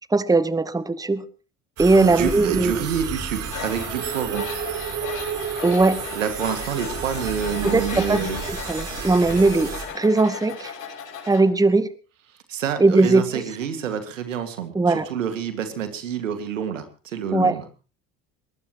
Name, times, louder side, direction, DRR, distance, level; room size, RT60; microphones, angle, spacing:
voice 1, 0.1-1.2 1.8-2.8 5.6-6.0 7.6-10.7 11.3-11.9 12.8-13.3 14.7-15.1 17.3-17.5, right 3 dB, 10° right, 15 dB, 1.1 m, -19 dB
sound 1, 1.8-9.9, right 7 dB, 55° right, 5.1 m, -31 dB
voice 2, 1.9-4.5 6.1-8.4 12.5-17.7, right 8 dB, 85° right, 9 dB, 2.1 m, -28 dB
Tools, 3.5-11.4, left 7 dB, 55° left, 6.6 m, -36 dB
21.5 x 20.0 x 3.1 m, 0.36 s
hypercardioid pair, 65°, 37 cm